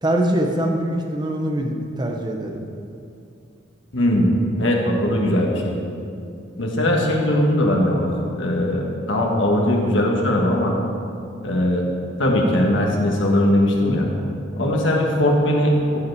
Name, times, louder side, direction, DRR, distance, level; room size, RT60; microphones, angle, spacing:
voice 1, 0.0-2.6, right 1 dB, 20° right, 2 dB, 0.9 m, -23 dB
voice 2, 3.9-4.3 4.6-5.7 6.6-8.1 8.4-10.7 11.4-11.8 12.2-14.1 14.6-16.0, left 1 dB, 75° left, -1 dB, 1.5 m, -19 dB
14.0 x 5.6 x 4.8 m, 2.6 s
head